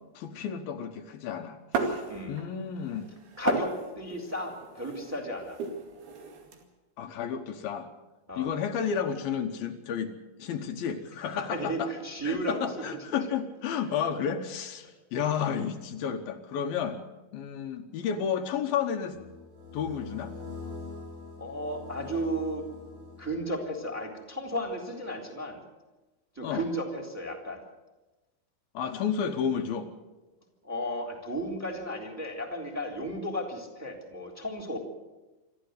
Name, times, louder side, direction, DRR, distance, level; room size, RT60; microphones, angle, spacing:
voice 1, 0.1-3.1 7.0-7.9 8.4-10.1 10.4-11.9 12.2-17.0 17.3-19.2 19.7-20.3 26.4-26.6 28.7-29.9, left 7 dB, 75° left, 5 dB, 2.9 m, -32 dB
sound 1, 1.7-2.6 2.9-6.6, right 4 dB, 75° right, 4.3 m, -34 dB
voice 2, 3.4-5.6 8.3-8.5 11.2-13.0 21.4-22.6 23.2-25.6 26.3-27.6 30.6-34.8, equal, 5° right, 3 dB, 2.8 m, -34 dB
sound 2, 19.1-23.7, left 3 dB, 40° right, 8.4 m, -43 dB
26.5 x 13.0 x 8.2 m, 1.1 s
omnidirectional pair, 4.4 m